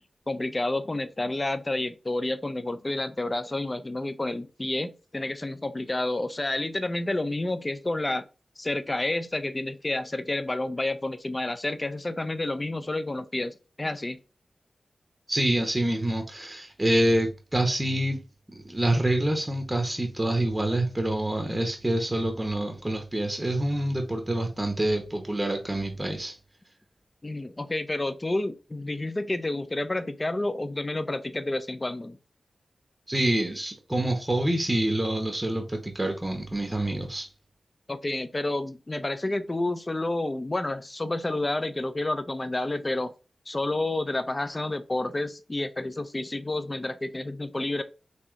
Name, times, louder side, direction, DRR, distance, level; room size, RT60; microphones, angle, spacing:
voice 1, 0.3-8.2 8.6-14.2 27.2-32.2 37.9-43.1 43.5-47.8, left 2 dB, 30° left, 0.4 m, -30 dB
voice 2, 15.3-18.2 18.6-26.3 33.1-37.3, right 1 dB, 20° right, 0.8 m, -26 dB
3.1 x 2.8 x 3.6 m
wide cardioid pair, 70°, 0 cm